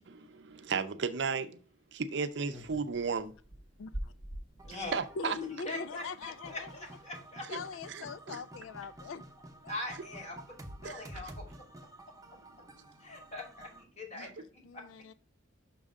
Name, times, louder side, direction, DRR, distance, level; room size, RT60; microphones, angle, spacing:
voice 1, 0.1-1.6 1.9-3.3 4.9-5.4 7.9-8.4 10.8-10.9, right 5 dB, 65° right, 0.6 m, -34 dB
sound 1, 2.5-5.0 6.2-6.3 6.5-6.6 6.8-7.1 7.6-7.9, right 1 dB, 60° left, 2.5 m, -45 dB
voice 2, 3.8-4.1 5.2-6.7 7.5-9.2 9.6-9.9 14.2-14.3 14.6-15.1, left 5 dB, 90° left, 0.4 m, -42 dB
voice 3, 4.6-5.0 5.6-7.5 9.7-10.4 10.8-11.5 13.0-14.3 14.7-14.8, left 2 dB, 35° left, 2.4 m, -41 dB
sound 2, 4.6-13.8, right 1 dB, 20° right, 0.8 m, -51 dB
6.0 x 3.7 x 5.2 m
head